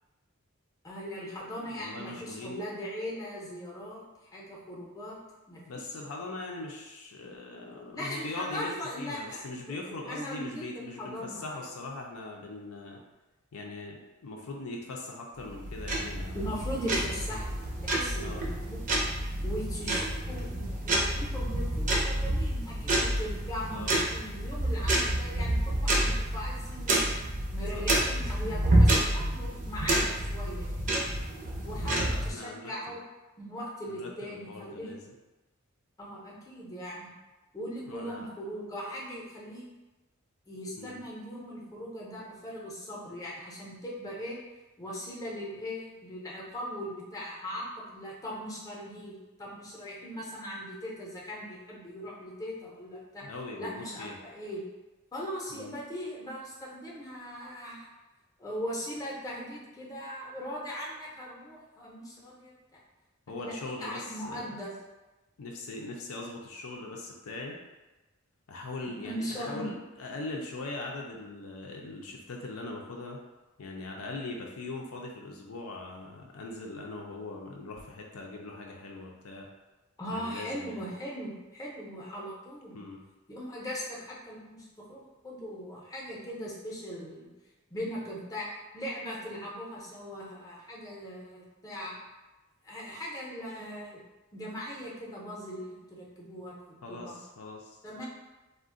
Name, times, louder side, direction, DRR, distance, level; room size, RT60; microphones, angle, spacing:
voice 1, 0.8-4.0 4.3-5.2 5.5-5.8 7.9-11.6 16.3-17.5 17.8-19.0 19.4-27.1 27.5-31.0 31.6-33.0 33.4-35.0 36.0-37.1 37.5-39.7 40.5-44.4 44.8-53.2 53.6-54.7 55.1-57.9 58.4-62.8 63.4-64.8 68.9-69.6 80.0-82.8 83.3-87.3 87.7-88.5 88.7-92.0 92.6-94.0 94.3-96.5 96.9-97.2 97.8-98.1, equal, 15° left, -4 dB, 0.6 m, -39 dB
voice 2, 1.7-2.6 5.7-8.7 9.0-13.0 13.5-16.5 18.2-18.4 23.7-23.9 27.7-27.9 31.8-32.7 33.9-35.0 37.9-38.3 40.8-41.0 53.2-54.2 55.5-55.8 63.3-64.5 65.4-67.6 68.5-73.2 73.6-79.5 80.1-80.9 82.7-83.0 96.8-98.1, left 2 dB, 85° left, 0 dB, 0.5 m, -41 dB
sound 1, 15.4-32.3, right 1 dB, 40° right, 0.5 m, -29 dB
2.4 x 2.1 x 3.6 m, 1.1 s
head